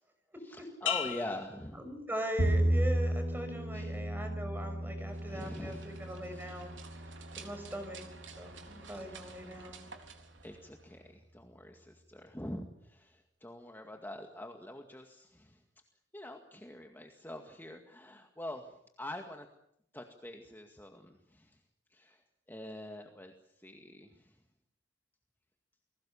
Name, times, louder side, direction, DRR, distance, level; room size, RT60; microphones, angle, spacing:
voice 1, 0.4-1.9 3.7-4.0 5.3-7.1 9.1-9.4 10.4-15.6 16.1-19.5 19.9-21.6 21.9-24.4, left 1 dB, 10° left, 3 dB, 2.1 m, -45 dB
sound 1, 0.9-2.6 3.1-3.6, left 10 dB, 85° left, 3.3 m, -39 dB
voice 2, 1.8-6.7 7.4-9.8, right 1 dB, 10° right, 6 dB, 6.0 m, -40 dB
Bowed string instrument, 2.4-8.7, right 1 dB, 60° right, 3.4 m, -34 dB
sound 2, 5.0-11.1, right 4 dB, 75° right, 3.8 m, -52 dB
29.5 x 21.0 x 7.2 m, 0.74 s
head